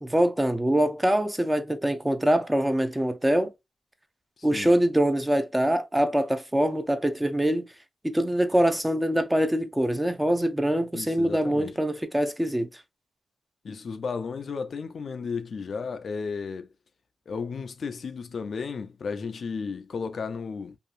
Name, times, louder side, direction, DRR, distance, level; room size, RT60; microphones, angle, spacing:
voice 1, 0.0-3.5 4.4-7.6 8.0-12.7, right 1 dB, 15° right, 0.6 m, -24 dB
voice 2, 10.9-11.7 13.6-16.7 17.3-20.8, left 5 dB, 65° left, 0.3 m, -34 dB
2.7 x 2.3 x 2.4 m
supercardioid pair, 45°, 0 cm